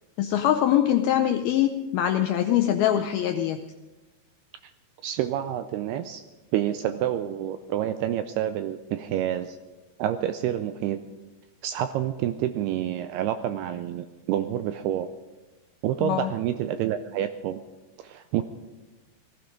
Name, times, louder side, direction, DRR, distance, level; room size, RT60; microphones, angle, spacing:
voice 1, 0.2-3.6 16.0-16.3, left 11 dB, 85° left, 6 dB, 2.2 m, -23 dB
voice 2, 5.0-6.2 6.5-9.6 10.0-11.0 11.6-15.1 15.8-17.6 18.0-18.4, right 11 dB, 85° right, 9 dB, 2.3 m, -28 dB
18.5 x 15.0 x 5.2 m, 1.2 s
omnidirectional pair, 5.1 m